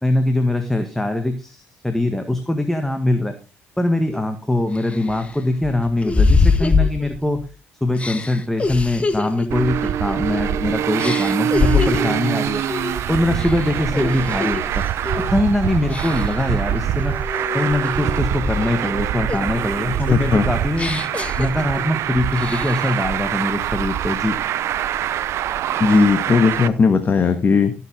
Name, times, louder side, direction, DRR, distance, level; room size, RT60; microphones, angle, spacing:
voice 1, 0.0-3.3 3.8-7.4 7.8-12.6 13.1-14.6 15.3-17.2 17.5-21.0 21.4-24.3, left 1 dB, 5° left, 6 dB, 1.8 m, -22 dB
sound 1, 4.1-4.2 4.7-7.5 8.0-10.6 11.0-12.2 12.7-13.0 13.3-14.6 15.0-15.4 15.9-16.5 17.0-18.9 19.3-22.0 22.3-23.0, left 4 dB, 25° left, 1.5 m, -24 dB
Traffic noise roadway noise, 9.5-26.7, right 11 dB, 70° right, 0.8 m, -24 dB
Laughter / Crowd, 11.8-17.8, right 5 dB, 45° right, 3.3 m, -37 dB
voice 2, 19.9-20.5 25.8-27.7, left 5 dB, 40° left, 8 dB, 1.5 m, -17 dB
16.0 x 7.6 x 3.7 m, 0.33 s
cardioid pair, 85°, 5 cm